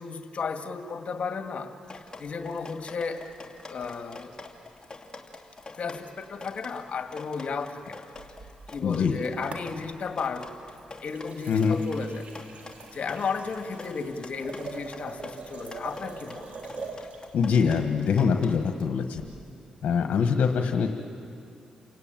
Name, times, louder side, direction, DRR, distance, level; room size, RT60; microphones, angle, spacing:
voice 1, 0.0-3.2 3.7-4.3 5.8-8.0 8.7-10.6 11.0-12.6 12.9-16.5 20.0-20.1, left 5 dB, 60° left, 6 dB, 2.1 m, -34 dB
Drip, 1.8-18.9, left 3 dB, 30° left, 2.9 m, -45 dB
sound 1, 8.1-9.1 9.5-10.2 10.7-17.3 19.1-19.3, right 4 dB, 60° right, 3.4 m, -43 dB
voice 2, 8.8-9.2 11.5-11.8 17.3-19.2 19.8-20.9, left 6 dB, 75° left, 5 dB, 1.5 m, -24 dB
29.5 x 18.0 x 9.2 m, 2.5 s
cardioid pair, 65°, 3 cm